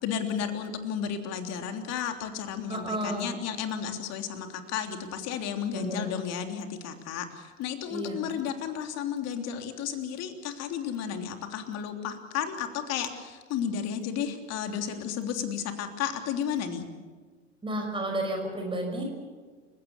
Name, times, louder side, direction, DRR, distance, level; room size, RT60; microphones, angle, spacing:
voice 1, 0.0-16.9, left 8 dB, 40° left, 6 dB, 3.3 m, -33 dB
voice 2, 2.7-3.3 5.7-6.2 7.9-8.4 17.6-19.0, right 1 dB, 15° right, 2 dB, 5.7 m, -32 dB
30.0 x 16.5 x 7.1 m, 1.5 s
hypercardioid pair, 95°, 38 cm